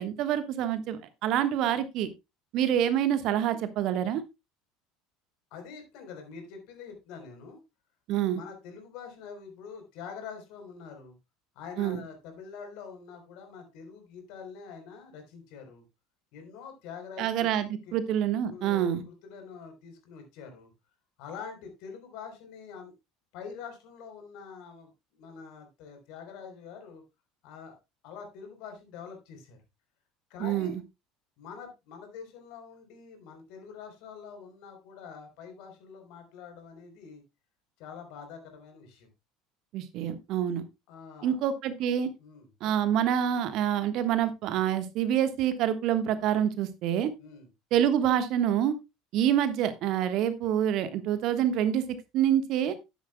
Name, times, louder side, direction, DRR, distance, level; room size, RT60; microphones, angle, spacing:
voice 1, 0.0-2.1 2.5-4.2 8.1-8.4 11.8-12.0 17.2-19.0 30.4-30.8 39.7-40.6 41.2-42.1 42.6-47.1 47.7-48.7 49.1-51.8 52.1-52.8, right 10 dB, 50° right, 12 dB, 1.3 m, -27 dB
voice 2, 5.5-7.6 8.3-11.2 11.6-15.8 16.3-17.5 17.9-18.0 18.5-20.7 21.2-22.9 23.3-27.0 27.4-27.7 28.0-29.6 30.3-30.8 31.4-37.2 37.8-39.1 40.9-41.4 42.2-42.7 47.2-47.5, left 6 dB, 55° left, 5 dB, 3.8 m, -45 dB
12.0 x 10.5 x 2.2 m, 0.23 s
figure-of-eight pair, 65°, 0 cm